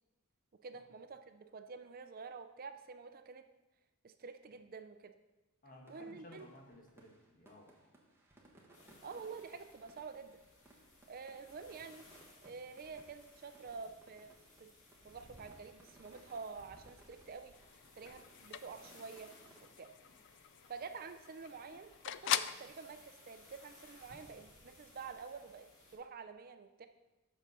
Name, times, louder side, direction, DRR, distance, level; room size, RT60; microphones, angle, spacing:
voice 1, 0.6-3.5 4.0-5.1 5.9-6.5 9.0-10.4 11.1-12.0 12.4-14.3 14.6-14.7 15.0-17.5 18.0-19.3 19.8-19.9 20.7-26.9, right 5 dB, 45° right, 8 dB, 0.4 m, -48 dB
voice 2, 5.6-7.9, left 1 dB, 40° left, 1 dB, 1.4 m, -57 dB
sound 1, 5.9-19.6, right 2 dB, 10° right, 1.3 m, -65 dB
sound 2, 8.7-26.0, left 2 dB, 80° left, 2.0 m, -61 dB
sound 3, 17.5-22.7, left 11 dB, 55° left, 0.3 m, -42 dB
8.1 x 6.4 x 5.4 m, 1.1 s
head